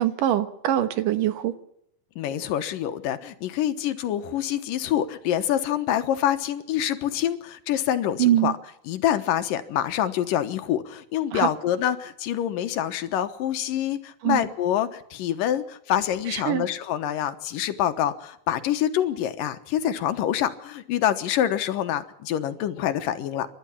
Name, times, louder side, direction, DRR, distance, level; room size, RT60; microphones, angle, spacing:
voice 1, 0.0-1.5 8.2-8.5 11.3-11.5 14.2-14.4 16.3-16.7, right 12 dB, 70° right, 11 dB, 2.9 m, -23 dB
voice 2, 2.2-8.5 8.9-23.5, left 11 dB, 75° left, 10 dB, 2.8 m, -26 dB
29.0 x 12.5 x 7.2 m, 0.78 s
omnidirectional pair, 4.0 m